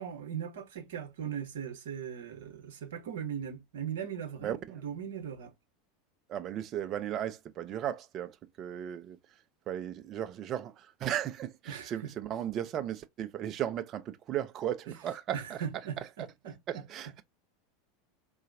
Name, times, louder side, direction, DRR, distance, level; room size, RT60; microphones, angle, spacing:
voice 1, 0.0-5.5 11.7-12.1 15.3-16.8, right 8 dB, 60° right, 0.9 m, -39 dB
voice 2, 6.3-9.2 9.7-15.6 16.7-17.2, right 11 dB, 35° right, 0.5 m, -36 dB
3.9 x 2.4 x 2.6 m
figure-of-eight pair, 80°, 0 cm